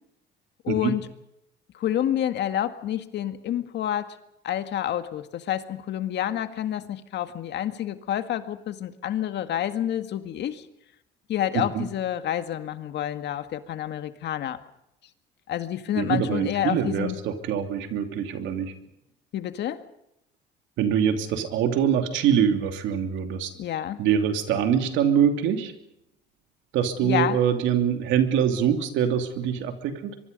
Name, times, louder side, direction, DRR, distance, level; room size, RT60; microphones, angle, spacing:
voice 1, 0.6-1.1 1.7-4.2 4.4-10.7 11.3-14.6 15.5-17.2 19.3-19.8 23.6-24.0 27.0-27.4, left 11 dB, 65° left, 9 dB, 1.9 m, -28 dB
voice 2, 11.5-11.8 15.9-18.7 20.8-23.5 24.0-25.7 26.7-30.2, right 8 dB, 80° right, 6 dB, 3.0 m, -24 dB
24.5 x 23.5 x 5.4 m, 0.81 s
cardioid pair, 95°, 19 cm